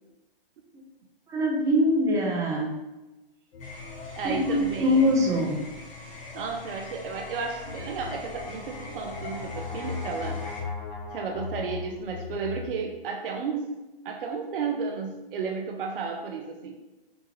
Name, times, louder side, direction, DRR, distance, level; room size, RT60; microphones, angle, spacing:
voice 1, 1.3-2.7 4.2-5.6, equal, 10° right, -2 dB, 0.6 m, -23 dB
sound 1, 3.5-12.7, left 6 dB, 90° left, 0.6 m, -40 dB
sound 2, 3.6-10.6, left 2 dB, 25° left, 1.2 m, -43 dB
voice 2, 4.2-5.1 6.3-10.4 11.1-13.8 14.0-16.8, right 5 dB, 65° right, 3 dB, 0.6 m, -33 dB
Brass instrument, 7.9-12.1, left 2 dB, 50° left, 1.1 m, -43 dB
5.1 x 2.4 x 3.0 m, 1.1 s
hypercardioid pair, 120°, 30 cm